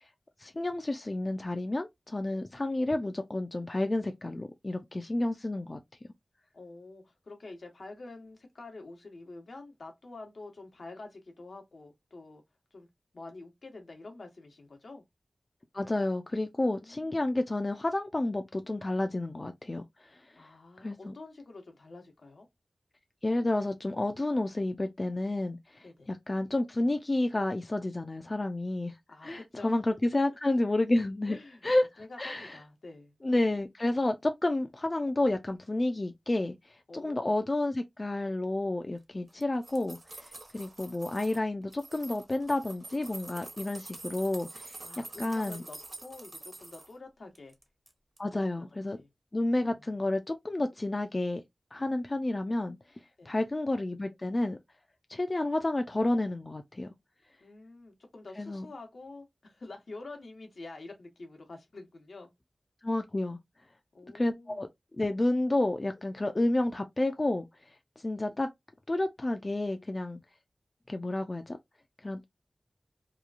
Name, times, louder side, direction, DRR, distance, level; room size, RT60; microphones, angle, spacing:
voice 1, 0.4-5.8 15.7-19.8 20.8-21.1 23.2-28.9 29.2-31.4 31.6-31.9 32.2-32.6 33.2-36.6 36.9-40.3 40.5-44.7 45.2-45.6 48.2-49.0 49.3-51.4 51.7-52.8 53.3-54.6 55.1-56.9 58.4-58.7 62.8-63.4 64.1-64.7 65.0-67.5 68.0-68.5 68.9-70.2 70.9-71.6 72.0-72.2, left 2 dB, 40° left, 0.4 m, -30 dB
voice 2, 6.5-12.4 12.7-12.9 13.1-15.0 16.7-17.2 20.3-22.5 25.8-26.1 29.1-29.7 31.3-31.6 32.0-33.2 36.9-37.4 44.8-47.6 48.3-48.7 48.9-49.1 49.7-49.9 53.2-53.3 57.4-62.3 63.9-64.6, left 3 dB, 80° left, 0.9 m, -47 dB
sound 1, 39.3-41.4 41.7-46.9 47.3-47.9 48.2-48.3, right 2 dB, 50° right, 0.8 m, -47 dB
2.9 x 2.3 x 2.4 m
wide cardioid pair, 55°, 0 cm